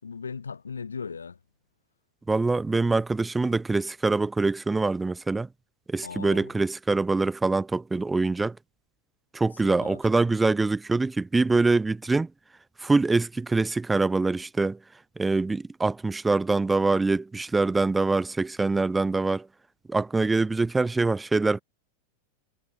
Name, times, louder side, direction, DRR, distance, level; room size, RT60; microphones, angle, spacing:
voice 1, 0.0-1.4 6.0-6.5 9.5-10.0, left 5 dB, 75° left, 4.0 m, -38 dB
voice 2, 2.3-5.5 5.9-8.6 9.3-12.3 12.8-14.8 15.2-19.5 19.9-21.6, right 3 dB, 10° right, 1.4 m, -24 dB
figure-of-eight pair, 90°, 0 cm